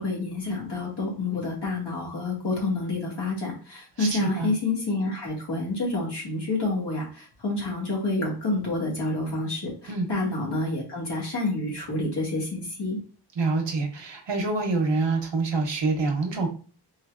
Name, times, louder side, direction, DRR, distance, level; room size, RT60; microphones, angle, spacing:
voice 1, 0.0-13.0, left 2 dB, 70° left, -3 dB, 2.0 m, -28 dB
voice 2, 4.0-4.5 9.9-10.1 13.4-16.5, right 3 dB, 85° right, 2 dB, 1.0 m, -26 dB
4.6 x 3.3 x 2.4 m, 0.39 s
wide cardioid pair, 65°, 42 cm